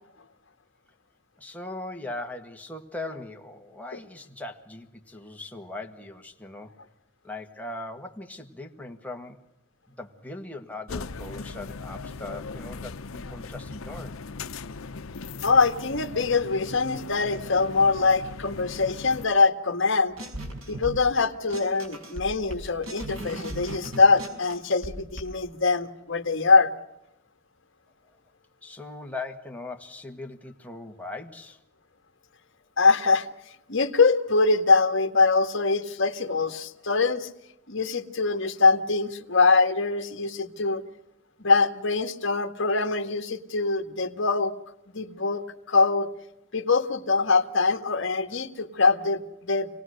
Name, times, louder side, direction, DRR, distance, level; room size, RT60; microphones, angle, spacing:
voice 1, 1.4-6.8 7.2-9.4 9.9-14.2 20.7-20.8 23.1-23.2 28.6-31.6, left 2 dB, 5° left, 3 dB, 1.6 m, -39 dB
sound 1, 10.9-19.3, left 4 dB, 80° left, 0.8 m, -39 dB
voice 2, 15.4-20.1 20.7-26.7 32.8-33.3 33.7-37.3 37.7-40.8 41.4-44.5 44.9-46.1 46.5-49.7, left 4 dB, 60° left, 7 dB, 1.7 m, -23 dB
sound 2, 20.2-21.2 21.5-25.2, right 1 dB, 80° right, 5.1 m, -37 dB
27.0 x 18.5 x 6.5 m, 0.84 s
head